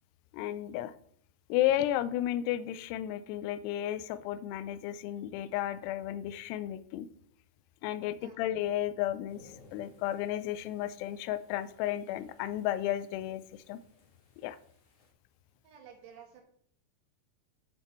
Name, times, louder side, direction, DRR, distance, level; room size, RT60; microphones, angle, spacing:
voice 1, 0.3-0.9 1.5-7.1 7.8-13.4 13.7-13.8 14.4-14.6, left 12 dB, 85° left, 13 dB, 2.6 m, -33 dB
sound 1, 9.3-15.1, left 3 dB, 55° left, 3.0 m, -62 dB
voice 2, 15.6-16.4, right 8 dB, 80° right, 2 dB, 3.4 m, -52 dB
11.5 x 6.6 x 3.1 m, 0.63 s
omnidirectional pair, 4.8 m